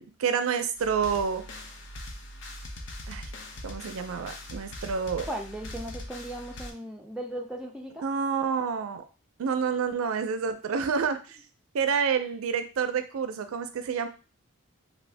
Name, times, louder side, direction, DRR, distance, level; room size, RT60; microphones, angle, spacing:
voice 1, 0.0-1.4 3.1-3.2 3.6-5.3 8.0-9.0 9.4-11.4 11.7-14.1, right 6 dB, 75° right, 9 dB, 0.4 m, -28 dB
sound 1, 0.8-6.7, left 1 dB, 60° left, 0.6 m, -41 dB
voice 2, 5.3-8.1, right 1 dB, 5° right, 0 dB, 0.3 m, -37 dB
2.7 x 2.6 x 3.2 m, 0.34 s
head